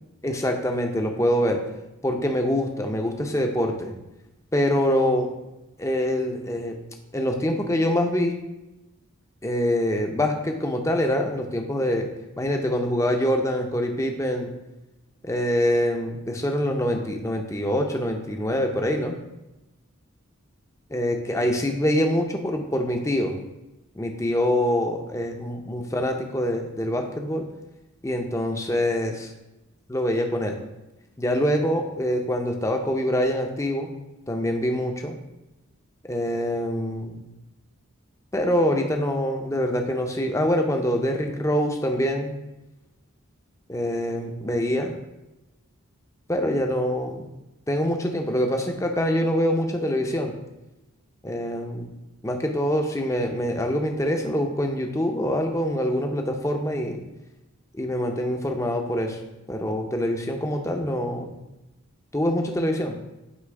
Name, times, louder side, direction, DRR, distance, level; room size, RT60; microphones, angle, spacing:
voice 1, 0.2-1.6 2.0-4.0 4.5-5.3 5.8-6.8 7.1-8.4 9.4-12.1 12.4-14.5 15.2-19.2 20.9-23.4 24.0-27.5 28.0-29.3 29.9-30.6 31.2-33.9 34.3-35.1 36.0-37.2 38.3-42.3 43.7-44.9 46.3-47.3 47.7-50.3 51.2-51.9 52.2-57.0 57.8-59.2 59.5-61.3 62.1-63.0, equal, 15° left, 3 dB, 0.6 m, -25 dB
8.2 x 3.0 x 4.7 m, 0.98 s
head